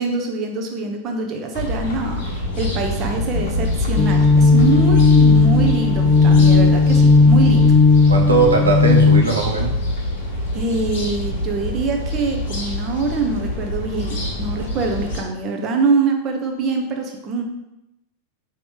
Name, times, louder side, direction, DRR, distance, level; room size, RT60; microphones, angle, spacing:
voice 1, 0.0-7.8 10.5-17.4, right 3 dB, 30° right, 3 dB, 0.8 m, -24 dB
sound 1, 1.5-15.2, left 1 dB, 50° left, 1.0 m, -25 dB
sound 2, 4.0-9.2, left 4 dB, 30° left, 0.4 m, -14 dB
voice 2, 8.1-9.8, right 3 dB, 75° right, 1 dB, 0.7 m, -18 dB
5.2 x 3.0 x 3.3 m, 0.89 s
figure-of-eight pair, 90°, 0 cm